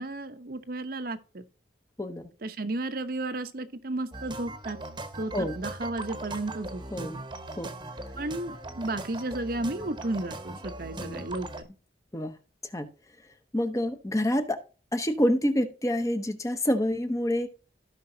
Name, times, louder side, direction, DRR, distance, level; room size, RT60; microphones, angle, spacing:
voice 1, 0.0-1.4 2.4-4.8 5.1-7.1 8.2-11.7, right 2 dB, 55° right, 0.9 m, -33 dB
voice 2, 2.0-2.3 5.3-5.6 6.9-7.2 7.6-7.7 11.0-11.3 12.1-12.4 12.7-12.9 13.5-14.6 14.9-17.5, equal, 20° left, 0.9 m, -27 dB
sound 1, 4.1-11.6, right 2 dB, 25° right, 1.0 m, -40 dB
15.5 x 5.4 x 2.8 m
head